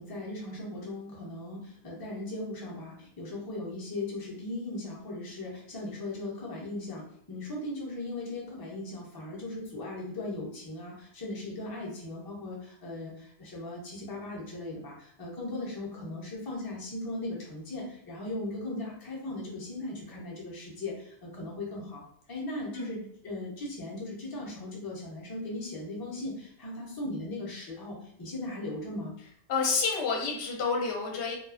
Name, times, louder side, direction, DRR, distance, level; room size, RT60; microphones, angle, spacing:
voice 1, 0.0-29.1, left 2 dB, 30° left, -3 dB, 0.4 m, -38 dB
voice 2, 29.5-31.4, left 4 dB, 65° left, 1 dB, 0.9 m, -29 dB
2.3 x 2.3 x 2.4 m, 0.67 s
omnidirectional pair, 1.3 m